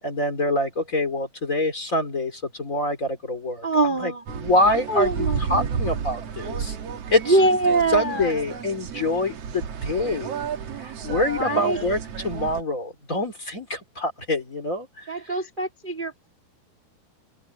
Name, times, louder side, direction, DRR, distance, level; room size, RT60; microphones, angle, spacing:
voice 1, 0.0-3.7 4.0-6.8 7.1-7.4 7.9-10.3 10.8-12.0 12.2-15.1, left 1 dB, 25° left, 2.4 m, -25 dB
voice 2, 3.6-4.2 4.9-5.7 7.3-8.3 11.3-11.9 15.1-16.3, right 2 dB, 25° right, 1.0 m, -23 dB
sound 1, 4.3-12.6, right 6 dB, 55° right, 1.8 m, -32 dB
open air
omnidirectional pair, 4.8 m